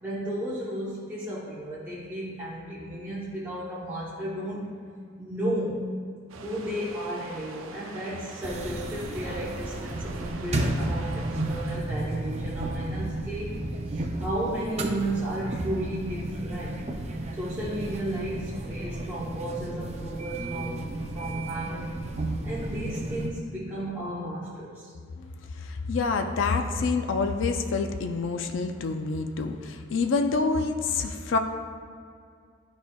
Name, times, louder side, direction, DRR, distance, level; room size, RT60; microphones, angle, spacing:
voice 1, 0.0-4.8 5.2-5.9 6.4-16.8 17.3-22.0 22.4-24.9, right 1 dB, 10° right, -9 dB, 0.8 m, -34 dB
sound 1, 6.3-11.8, right 4 dB, 90° right, 0.5 m, -44 dB
sound 2, 8.4-23.3, right 1 dB, 35° right, 0.5 m, -33 dB
voice 2, 25.2-31.4, left 4 dB, 65° left, 5 dB, 0.4 m, -27 dB
11.5 x 4.3 x 2.3 m, 2.2 s
head